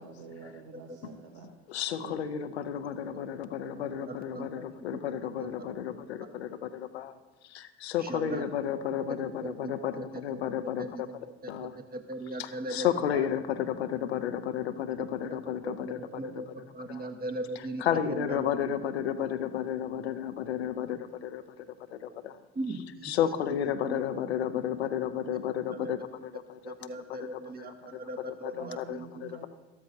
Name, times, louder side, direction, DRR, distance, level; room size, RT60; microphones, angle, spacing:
voice 1, 0.0-1.5 2.0-2.2 6.3-6.5 26.9-27.0 28.5-29.5, right 4 dB, 70° right, 2 dB, 1.2 m, -47 dB
voice 2, 1.7-7.1 7.4-11.1 11.5-11.7 12.4-16.3 16.9-17.1 17.8-21.7 21.9-22.4 23.0-27.4 27.9-28.0 28.3-28.5 28.8-29.5, left 9 dB, 80° left, 10 dB, 0.7 m, -32 dB
voice 3, 4.0-4.6 5.4-5.8 6.2-6.3 8.0-8.5 9.1-9.2 9.4-9.5 10.0-11.2 11.4-12.9 13.1-13.3 15.0-15.4 15.6-17.8 18.1-18.5 22.5-23.2 23.9-24.5 25.2-25.4 25.7-26.1 26.6-29.1, right 2 dB, 30° right, 7 dB, 1.3 m, -39 dB
13.5 x 13.0 x 2.7 m, 1.2 s
figure-of-eight pair, 55°, 32 cm